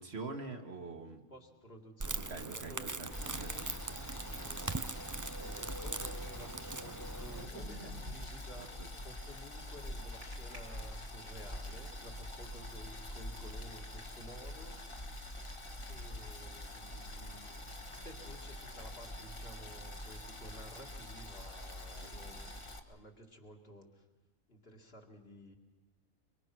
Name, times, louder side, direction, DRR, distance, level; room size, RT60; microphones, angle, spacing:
voice 1, 0.0-1.2 2.2-3.5 3.9-4.0 8.6-8.9 22.0-22.3, right 3 dB, 50° right, 4 dB, 1.8 m, -45 dB
voice 2, 1.3-3.7 4.3-4.7 5.4-8.8 9.0-14.8 15.9-17.6 18.0-24.1 24.5-25.6, equal, 45° left, 2 dB, 2.6 m, -53 dB
Crackle, 2.0-7.4, right 3 dB, 25° right, 0.4 m, -41 dB
Boiling, 3.1-22.8, left 1 dB, 25° left, 1.3 m, -45 dB
sound 1, 7.3-8.5 10.2-10.6 11.2-11.8, right 1 dB, 85° right, 4.3 m, -48 dB
24.5 x 23.5 x 6.1 m, 1.2 s
omnidirectional pair, 1.4 m